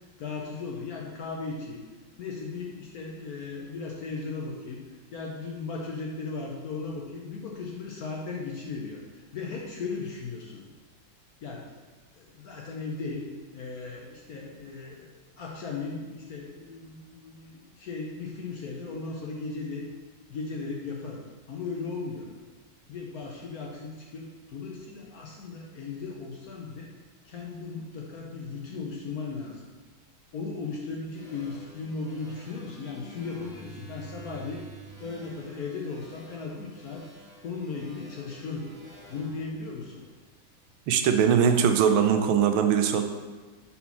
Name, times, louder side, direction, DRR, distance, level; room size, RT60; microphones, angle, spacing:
voice 1, 0.2-1.8 2.2-4.8 5.1-10.6 11.4-11.7 12.2-13.2 13.5-15.1 15.4-19.8 20.3-21.2 21.5-22.3 22.9-26.9 27.2-29.7 30.3-34.6 35.0-37.0 37.4-38.7 39.1-40.0, left 4 dB, 65° left, -2 dB, 1.0 m, -36 dB
sound 1, 31.1-40.5, right 2 dB, ahead, 1.6 m, -49 dB
voice 2, 40.9-43.0, right 7 dB, 90° right, 7 dB, 1.4 m, -21 dB
4.3 x 4.2 x 5.6 m, 1.3 s
omnidirectional pair, 2.2 m